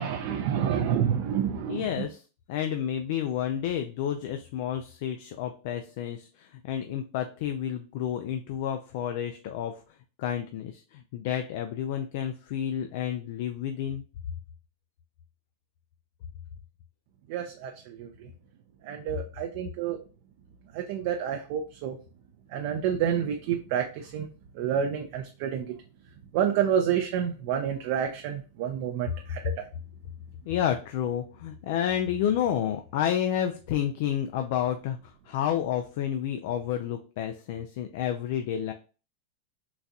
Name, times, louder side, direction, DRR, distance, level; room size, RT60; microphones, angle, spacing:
voice 1, 0.0-2.0 17.3-18.3 18.8-20.0 20.7-22.0 22.5-24.3 24.5-25.7 26.3-29.6, right 9 dB, 55° right, 3 dB, 0.4 m, -29 dB
voice 2, 1.7-2.2 2.5-9.8 10.2-14.0 30.5-35.0 35.3-38.7, left 10 dB, 60° left, 6 dB, 0.3 m, -30 dB
3.9 x 2.3 x 2.7 m, 0.35 s
supercardioid pair, 140°, 0 cm